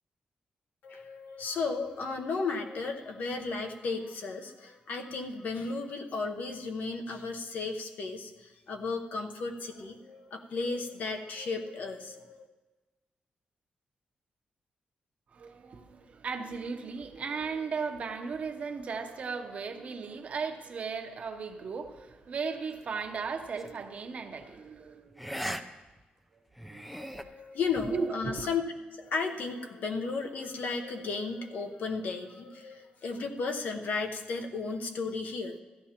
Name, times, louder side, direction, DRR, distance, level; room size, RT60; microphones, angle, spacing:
voice 1, 0.8-12.5 27.0-28.6 28.9-35.6, left 4 dB, 65° left, 4 dB, 0.9 m, -34 dB
voice 2, 15.3-25.3 26.7-26.9 27.8-28.5, right 5 dB, 45° right, 5 dB, 0.8 m, -36 dB
sound 1, 23.6-23.8 25.2-25.6 26.0-26.1 26.6-27.2, equal, ahead, 0.4 m, -37 dB
15.0 x 11.0 x 2.9 m, 1.2 s
wide cardioid pair, 160°, 3 cm